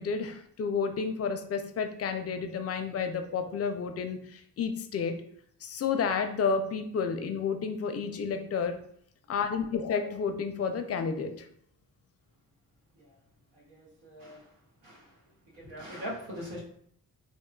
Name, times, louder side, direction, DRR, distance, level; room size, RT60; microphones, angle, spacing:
voice 1, 0.0-5.2 5.6-8.8 9.3-11.5, left 5 dB, 35° left, 7 dB, 0.4 m, -31 dB
voice 2, 13.5-15.2 15.5-16.6, equal, 85° right, -5 dB, 1.0 m, -42 dB
2.7 x 2.2 x 2.2 m, 0.66 s
supercardioid pair, 40°, 41 cm